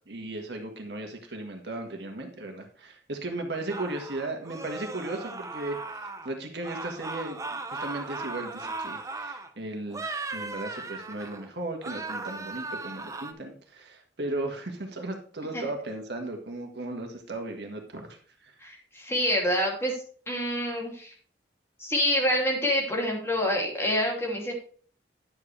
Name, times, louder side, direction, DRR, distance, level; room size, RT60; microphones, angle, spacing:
voice 1, 0.1-18.5, right 2 dB, 70° right, 3 dB, 1.6 m, -36 dB
sound 1, 3.7-6.3 6.6-9.5 9.9-11.5 11.8-13.3, right 3 dB, 20° right, 0.7 m, -37 dB
voice 2, 18.6-20.0 20.3-21.1 21.8-24.5, equal, 15° left, -2 dB, 2.7 m, -27 dB
10.5 x 7.6 x 3.3 m, 0.44 s
head